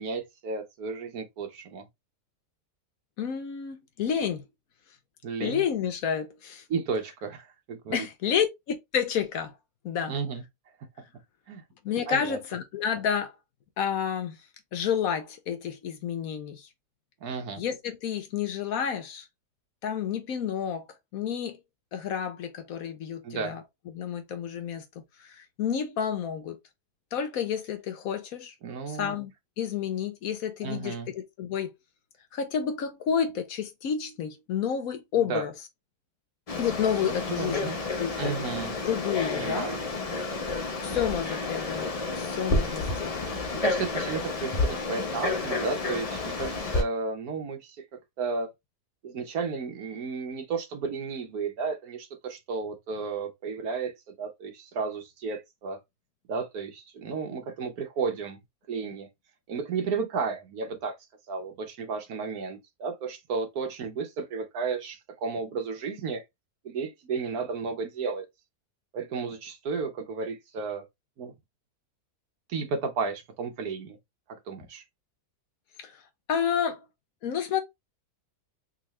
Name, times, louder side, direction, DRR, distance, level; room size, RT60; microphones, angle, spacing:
voice 1, 0.0-1.8 5.2-5.6 6.7-8.1 10.1-10.4 11.5-11.6 12.1-12.4 17.2-17.6 23.2-23.5 28.6-29.2 30.6-31.1 35.1-35.4 37.1-37.8 38.2-38.8 39.3-39.8 43.5-47.8 48.2-48.5 49.0-53.9 54.2-55.8 56.3-58.4 58.7-59.1 59.5-60.9 61.3-66.2 66.6-68.2 68.9-70.8 71.2-71.3 72.5-74.0 74.5-74.8, right 5 dB, 70° right, 1.3 m, -33 dB
voice 2, 3.2-4.4 5.4-6.6 7.9-9.6 9.8-10.1 11.8-13.3 13.8-14.4 14.7-16.7 17.6-19.2 19.8-20.9 21.1-21.6 21.9-24.8 25.2-26.6 27.1-28.5 28.9-29.3 29.6-31.7 32.3-35.5 36.6-37.7 38.0-38.4 38.8-39.7 40.8-43.2 45.0-45.1 75.8-76.0 76.3-76.8 77.2-77.6, left 8 dB, 65° left, 1.1 m, -30 dB
Frog, 36.5-46.8, left 3 dB, 35° left, 0.6 m, -30 dB
3.7 x 2.8 x 3.0 m
omnidirectional pair, 1.7 m